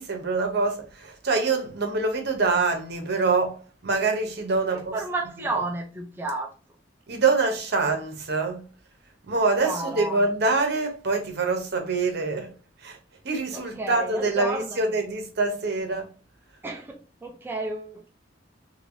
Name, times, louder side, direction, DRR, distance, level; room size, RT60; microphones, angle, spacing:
voice 1, 0.0-5.0 7.1-8.7 9.2-12.5 12.8-13.0 13.2-16.1, right 3 dB, 60° right, 0.8 m, -25 dB
voice 2, 4.7-6.5 9.6-10.2 13.5-15.0 16.6-18.1, right 2 dB, 10° right, 0.4 m, -32 dB
3.2 x 2.6 x 2.6 m
head